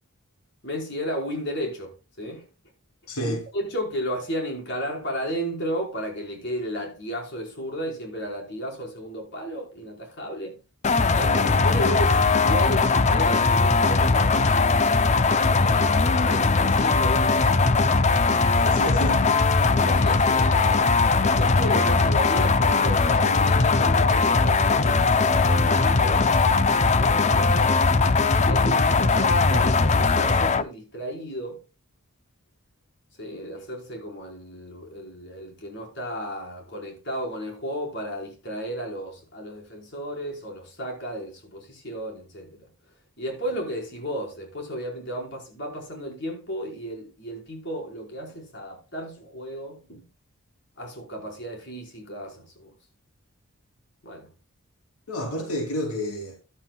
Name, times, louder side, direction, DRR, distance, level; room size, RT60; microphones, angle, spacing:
voice 1, 0.6-2.5 3.2-10.6 11.1-14.8 15.6-17.6 18.6-19.0 19.7-20.9 21.4-27.9 28.4-31.6 33.2-42.7 43.2-50.0 50.8-52.7 54.0-54.3, equal, 50° left, 4.6 m, -34 dB
voice 2, 3.1-3.4 18.5-19.3 55.1-56.4, equal, 90° left, 3.1 m, -30 dB
sound 1, 10.8-30.6, left 4 dB, 30° left, 0.5 m, -20 dB
13.5 x 11.5 x 2.3 m
head